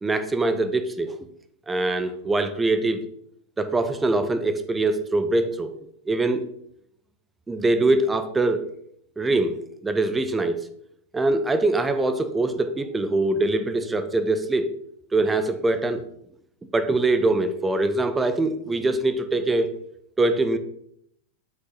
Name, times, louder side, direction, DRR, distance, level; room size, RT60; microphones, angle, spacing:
voice 1, 0.0-1.1 1.7-3.0 3.6-5.7 6.1-6.4 7.5-8.7 9.2-10.7 11.1-14.7 15.1-16.0 16.7-19.7 20.2-20.6, right 2 dB, 10° right, 10 dB, 0.6 m, -23 dB
7.3 x 6.3 x 3.1 m, 0.71 s
figure-of-eight pair, 90°, 0 cm